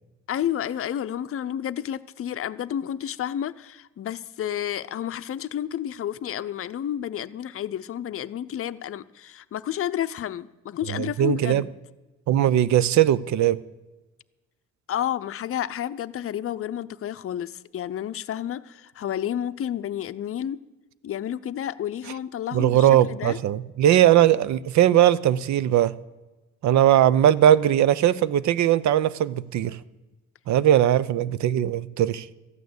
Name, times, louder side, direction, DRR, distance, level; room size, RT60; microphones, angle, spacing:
voice 1, 0.3-11.7 14.9-20.6 21.0-23.4, left 10 dB, 45° left, 0.6 m, -30 dB
voice 2, 10.9-11.6 12.3-13.6 22.5-25.9 26.6-29.8 30.5-32.3, right 11 dB, 65° right, 0.7 m, -19 dB
13.5 x 9.3 x 8.0 m
cardioid pair, 90°, 30 cm